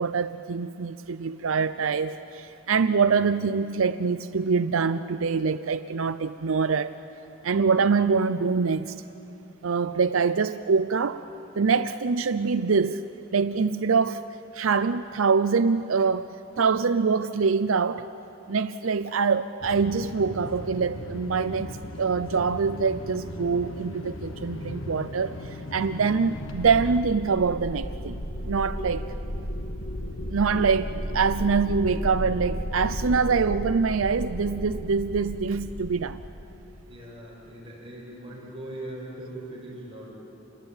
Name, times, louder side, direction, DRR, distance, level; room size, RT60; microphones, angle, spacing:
voice 1, 0.0-6.9 7.4-9.0 9.6-11.2 11.6-13.0 13.3-14.2 14.5-16.3 16.6-18.1 18.5-29.1 30.3-36.2, right 5 dB, 80° right, 12 dB, 0.6 m, -24 dB
sound 1, 19.6-27.0, left 1 dB, 80° left, 1.5 m, -38 dB
sound 2, 26.3-36.9, equal, 65° left, 1.6 m, -34 dB
voice 2, 36.9-40.1, right 1 dB, 30° right, -4 dB, 6.7 m, -40 dB
28.5 x 22.0 x 8.9 m, 2.9 s
head